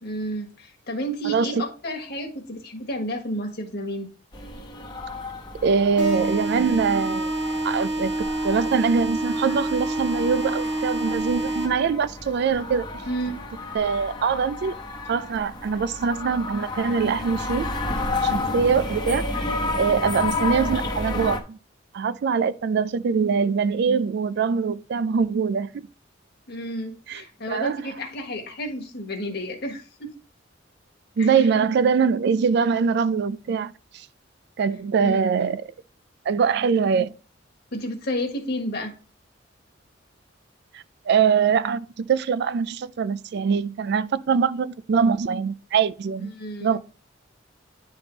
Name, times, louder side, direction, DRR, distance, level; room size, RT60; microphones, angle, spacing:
voice 1, 0.0-4.1 13.1-13.4 26.5-30.1 31.2-31.4 35.0-35.2 37.7-38.9 46.2-46.8, equal, 55° left, 1.5 m, -31 dB
voice 2, 1.2-1.6 5.6-7.3 7.6-12.9 13.7-14.7 15.1-17.7 18.2-19.4 19.7-21.6 21.9-25.7 27.1-27.2 27.5-27.8 31.2-34.1 34.6-35.6 36.3-37.1 40.7-46.3 46.6-46.8, right 6 dB, 60° right, 0.3 m, -23 dB
sound 1, 4.3-21.4, left 2 dB, 20° left, 1.0 m, -31 dB
sound 2, 6.0-12.0, right 1 dB, 5° right, 1.7 m, -27 dB
9.9 x 3.5 x 3.9 m
head